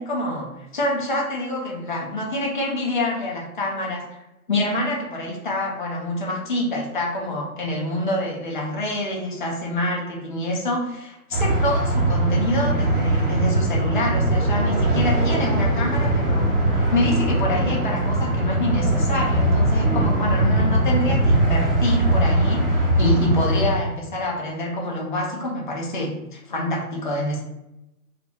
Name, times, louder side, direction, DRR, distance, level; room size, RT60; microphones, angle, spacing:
voice 1, 0.0-4.1 4.5-27.4, left 1 dB, 35° left, -2 dB, 0.4 m, -26 dB
sound 1, 11.3-23.7, right 1 dB, 40° right, 0.7 m, -21 dB
2.5 x 2.3 x 3.3 m, 0.92 s
hypercardioid pair, 160°, 45 cm